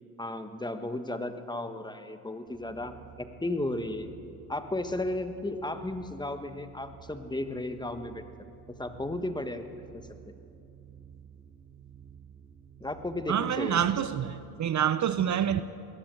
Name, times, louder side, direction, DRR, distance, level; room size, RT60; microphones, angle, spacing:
voice 1, 0.2-4.1 4.5-8.2 8.7-9.6 12.8-14.1, left 1 dB, 10° left, 1.4 m, -34 dB
sound 1, 2.5-14.6, right 8 dB, 25° right, 3.1 m, -52 dB
voice 2, 13.3-15.6, right 9 dB, 45° right, 0.7 m, -27 dB
21.5 x 17.5 x 7.7 m
cardioid pair, 85°, 38 cm